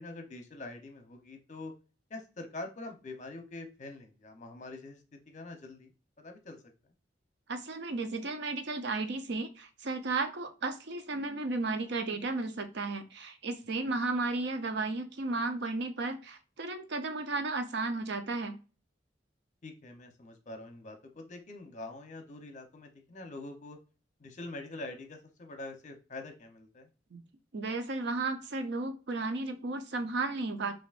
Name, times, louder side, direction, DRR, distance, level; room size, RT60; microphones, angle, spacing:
voice 1, 0.0-1.7 2.1-5.9 6.2-6.6 13.9-14.0 19.6-23.8 24.2-26.9, left 2 dB, 45° left, 5 dB, 0.8 m, -45 dB
voice 2, 7.5-18.6 27.1-27.2 27.5-30.8, right 3 dB, 65° right, 7 dB, 0.7 m, -34 dB
5.9 x 2.5 x 2.5 m, 0.34 s
head